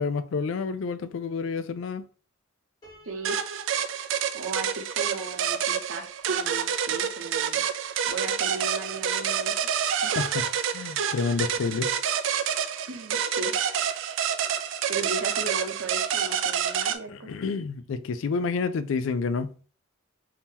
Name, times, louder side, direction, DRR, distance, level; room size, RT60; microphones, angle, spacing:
voice 1, 0.0-2.1 10.1-10.5 10.7-11.9 17.1-19.5, left 4 dB, 70° left, 0.3 m, -29 dB
Piano, 2.8-6.0, equal, 20° left, 1.7 m, -58 dB
voice 2, 3.0-3.4 4.3-7.6 8.1-9.7 10.0-10.2 12.9-13.5 14.9-17.3, right 3 dB, 90° right, 0.7 m, -37 dB
sound 1, 3.2-17.0, right 8 dB, 70° right, 0.4 m, -28 dB
3.6 x 2.7 x 2.8 m
head